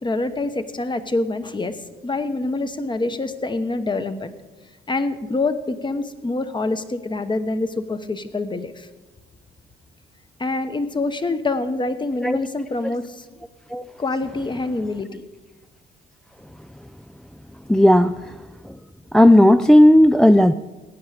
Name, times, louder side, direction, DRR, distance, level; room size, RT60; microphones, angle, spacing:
voice 1, 0.0-1.8 2.0-4.3 4.9-8.9 10.4-13.2 14.0-15.2, left 2 dB, 25° left, 10 dB, 1.0 m, -26 dB
voice 2, 17.7-18.2 19.1-20.5, left 1 dB, 5° left, 10 dB, 0.3 m, -13 dB
16.0 x 9.5 x 5.0 m, 1.2 s
cardioid pair, 90°, 20 cm